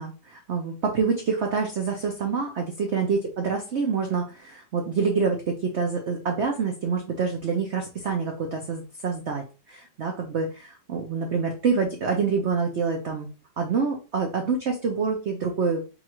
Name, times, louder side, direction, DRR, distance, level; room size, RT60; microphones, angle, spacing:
voice 1, 0.0-13.3 13.6-15.9, right 5 dB, 85° right, 2 dB, 0.6 m, -27 dB
5.3 x 2.4 x 2.9 m, 0.33 s
omnidirectional pair, 2.0 m